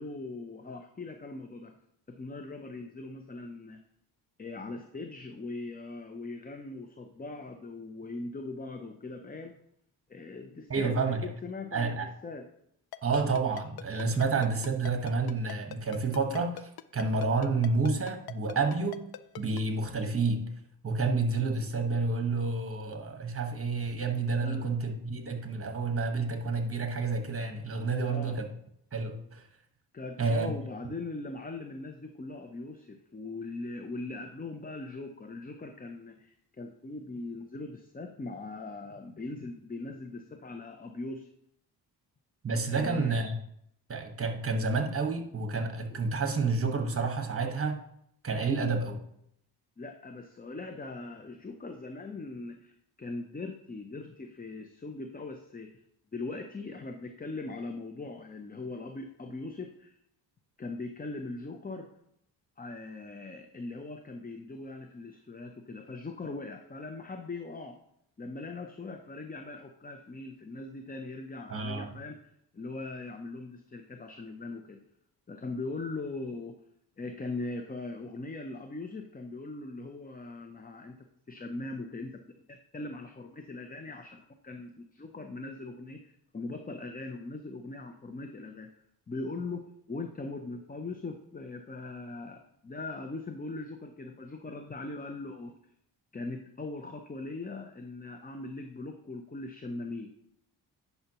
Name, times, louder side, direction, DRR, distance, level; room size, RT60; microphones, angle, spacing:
voice 1, 0.0-1.7 2.1-3.8 4.4-9.6 10.1-12.0 12.2-12.5 24.4-24.7 28.0-28.4 29.9-41.3 42.7-43.2 45.9-46.0 49.8-55.7 56.1-59.9 60.6-61.9 62.6-67.8 68.2-72.2 72.5-74.8 75.3-76.6 77.0-82.2 82.5-95.5 96.1-100.1, left 3 dB, 20° left, 5 dB, 0.7 m, -40 dB
voice 2, 10.7-11.3 11.7-12.1 13.0-19.0 19.4-20.4 20.8-28.5 28.9-29.4 30.2-30.5 42.4-43.4 43.9-47.8 48.2-49.0 71.5-71.9, right 4 dB, 30° right, 5 dB, 1.4 m, -29 dB
Ringtone, 12.9-19.6, left 13 dB, 60° left, 0.5 m, -41 dB
10.0 x 5.7 x 3.0 m, 0.72 s
cardioid pair, 80°, 42 cm